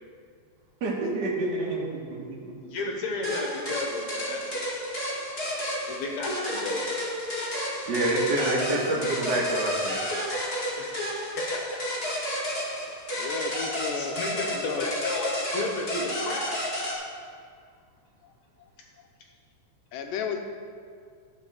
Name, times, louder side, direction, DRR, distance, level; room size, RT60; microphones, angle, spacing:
voice 1, 0.8-2.6 7.9-10.0, right 2 dB, 40° right, -3 dB, 1.7 m, -27 dB
voice 2, 2.7-4.9 5.9-7.0 10.8-11.6 13.0-13.6 13.9-17.1, left 2 dB, 65° left, 0 dB, 2.3 m, -34 dB
sound 1, 3.2-16.9, equal, 30° left, 1.2 m, -31 dB
voice 3, 13.1-14.2 14.5-14.9 19.9-20.4, left 6 dB, 80° left, 5 dB, 2.4 m, -33 dB
13.0 x 5.1 x 6.7 m, 2.2 s
omnidirectional pair, 3.9 m